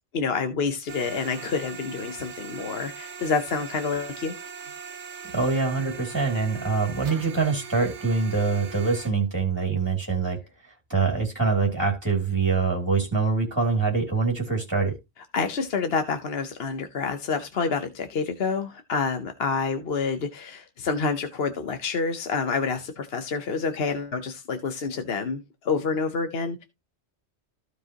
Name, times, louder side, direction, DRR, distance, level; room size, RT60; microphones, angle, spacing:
voice 1, 0.1-4.3 15.3-26.6, left 5 dB, 60° left, 1.1 m, -28 dB
sound 1, 0.9-9.1, right 6 dB, 85° right, 1.5 m, -40 dB
voice 2, 5.3-10.4 10.9-15.0, right 4 dB, 15° right, 2.4 m, -24 dB
15.0 x 5.3 x 2.9 m
omnidirectional pair, 1.2 m